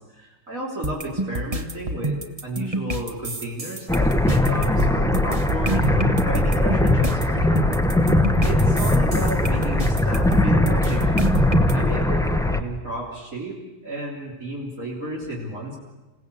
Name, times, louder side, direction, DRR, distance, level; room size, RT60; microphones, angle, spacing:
voice 1, 0.1-7.9 8.4-11.3 11.7-15.8, right 1 dB, 45° right, -4 dB, 4.0 m, -33 dB
sound 1, 0.8-11.7, right 2 dB, 20° right, 1.2 m, -28 dB
sound 2, 3.9-12.6, left 1 dB, 5° left, 0.7 m, -20 dB
27.5 x 17.5 x 8.5 m, 1.1 s
omnidirectional pair, 1.9 m